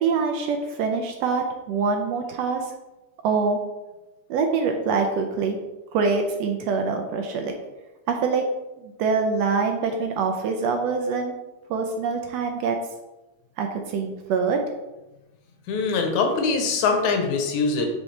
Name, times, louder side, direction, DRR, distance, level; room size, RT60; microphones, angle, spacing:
voice 1, 0.0-2.7 3.2-3.6 4.3-5.6 5.9-7.5 8.1-8.4 8.8-11.4 11.7-12.8 13.6-14.6, right 5 dB, 75° right, 4 dB, 1.7 m, -24 dB
voice 2, 15.7-17.9, left 4 dB, 85° left, 4 dB, 2.4 m, -23 dB
7.6 x 5.5 x 3.3 m, 1.0 s
omnidirectional pair, 3.3 m